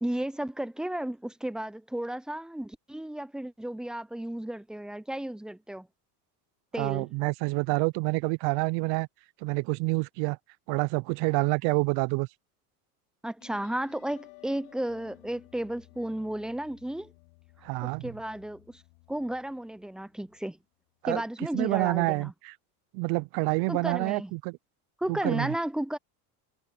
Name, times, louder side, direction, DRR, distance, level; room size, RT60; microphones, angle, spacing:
voice 1, 0.0-5.9 6.7-7.1 13.2-17.1 17.8-18.8 19.1-20.6 21.1-22.3 23.7-24.3 25.0-26.0, right 1 dB, ahead, 0.4 m, -33 dB
voice 2, 6.8-9.1 9.4-10.4 10.7-12.3 17.6-18.1 21.0-21.2 21.5-22.5 22.9-24.6 25.1-25.5, right 27 dB, 60° right, 0.6 m, -27 dB
sound 1, 13.4-20.6, left 30 dB, 75° left, 4.3 m, -56 dB
supercardioid pair, 95°, 45 cm